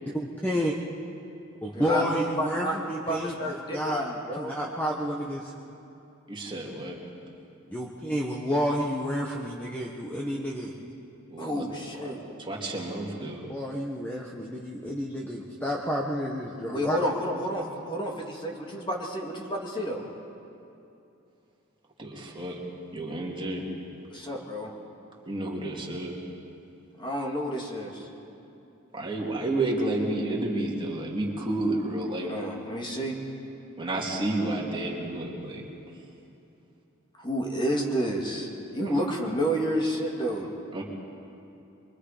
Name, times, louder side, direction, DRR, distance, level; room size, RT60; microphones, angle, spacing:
voice 1, 0.1-0.7 1.6-4.0 4.4-5.5 7.1-7.2 7.7-10.7 13.5-17.0, equal, 10° left, -2 dB, 1.3 m, -30 dB
voice 2, 1.7-4.5 11.4-12.2 16.7-20.0 22.1-22.2 24.1-24.7 27.0-28.1 32.2-33.2 37.2-40.5, equal, 25° left, -1 dB, 2.2 m, -30 dB
voice 3, 6.3-7.0 11.3-11.6 11.9-13.5 22.0-22.6 22.9-23.6 25.3-26.2 28.9-32.3 33.8-35.6 38.8-39.0 40.7-40.8, right 2 dB, 25° right, -2 dB, 2.7 m, -31 dB
24.0 x 23.5 x 5.1 m, 2.8 s
head